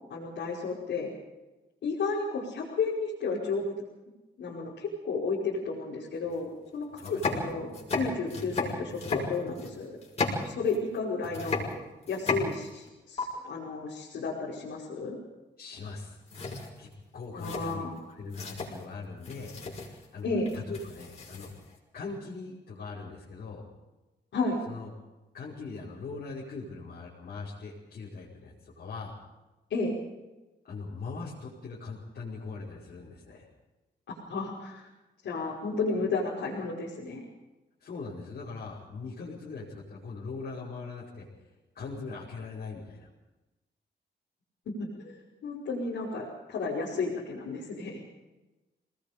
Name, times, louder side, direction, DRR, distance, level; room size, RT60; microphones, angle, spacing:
voice 1, 0.1-1.1 1.8-3.7 4.4-10.0 10.4-11.7 12.1-15.2 17.3-18.0 20.2-20.5 24.3-24.6 29.7-29.9 34.1-34.9 35.2-37.3 44.9-48.0, left 4 dB, 85° left, -6 dB, 5.3 m, -32 dB
sound 1, 6.2-6.3 6.9-11.0 11.2-12.9 13.2-13.3 15.8-16.0 16.3-21.7, left 3 dB, 35° left, 5.9 m, -35 dB
voice 2, 7.0-7.4 15.6-16.2 16.8-16.9 17.1-19.6 20.1-20.3 20.5-21.5 21.9-23.7 24.7-24.9 25.3-29.2 30.7-33.5 37.8-41.3 41.7-43.1, left 4 dB, 55° left, -7 dB, 5.4 m, -41 dB
27.0 x 20.0 x 5.2 m, 1.1 s
wide cardioid pair, 180°, 18 cm